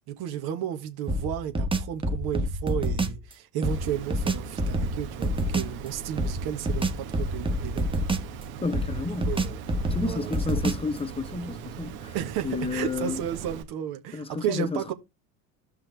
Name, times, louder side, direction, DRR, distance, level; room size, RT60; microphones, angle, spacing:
voice 1, 0.1-7.9 9.3-9.6 10.0-10.7 12.1-14.9, right 10 dB, 60° right, 1.6 m, -33 dB
sound 1, 1.1-3.2 3.6-5.8 6.2-8.4 8.7-11.0, right 1 dB, 10° right, 1.4 m, -28 dB
Water, 3.6-13.6, right 7 dB, 80° right, 1.8 m, -40 dB
voice 2, 8.6-9.3 9.9-12.1 12.4-13.2 14.1-14.9, left 3 dB, 15° left, 1.1 m, -31 dB
13.5 x 5.7 x 3.4 m
hypercardioid pair, 85°, 42 cm